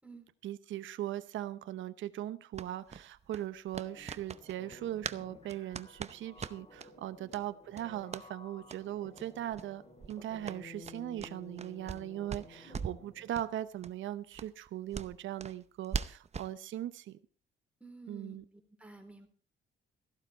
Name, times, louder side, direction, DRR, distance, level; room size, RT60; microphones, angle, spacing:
voice 1, 0.4-9.8 10.1-17.2 18.1-18.4, right 12 dB, 75° right, 13 dB, 0.8 m, -39 dB
sound 1, 2.5-5.2 5.5-6.9 7.3-7.4 7.7-8.3 8.6-8.8 9.1-9.2 9.5-9.7 10.0-12.0 12.3-13.0 13.3-13.5 13.8-13.9 14.3-16.5, right 6 dB, 35° right, 0.8 m, -41 dB
sound 2, 3.8-13.4, left 2 dB, 30° left, 4.8 m, -54 dB
voice 2, 17.8-19.3, right 3 dB, 5° right, 3 dB, 3.9 m, -52 dB
14.5 x 12.0 x 4.4 m, 0.40 s
cardioid pair, 90°, 20 cm